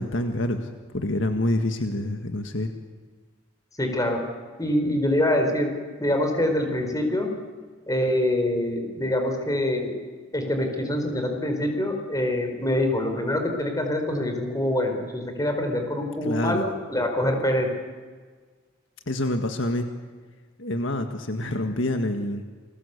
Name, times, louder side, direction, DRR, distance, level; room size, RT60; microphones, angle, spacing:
voice 1, 0.0-2.7 16.2-16.6 19.1-19.9 20.6-22.4, left 1 dB, 65° left, 6 dB, 1.8 m, -27 dB
voice 2, 3.8-4.2 4.6-7.3 7.9-9.9 10.3-17.7, left 1 dB, 15° left, 4 dB, 4.6 m, -25 dB
29.0 x 21.5 x 8.3 m, 1.5 s
head